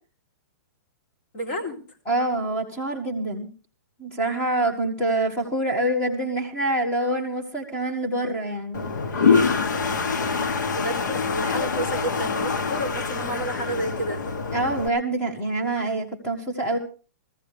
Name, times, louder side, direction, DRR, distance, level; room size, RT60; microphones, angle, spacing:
voice 1, 1.3-1.8 10.8-14.3, right 1 dB, 40° left, 2 dB, 3.1 m, -30 dB
voice 2, 2.1-3.5 4.0-8.8 14.5-16.8, right 1 dB, 15° left, 3 dB, 1.7 m, -26 dB
Toilet flush, 8.7-14.9, left 5 dB, 90° left, 1.3 m, -25 dB
18.0 x 14.5 x 3.3 m, 0.35 s
hypercardioid pair, 165°, 10 cm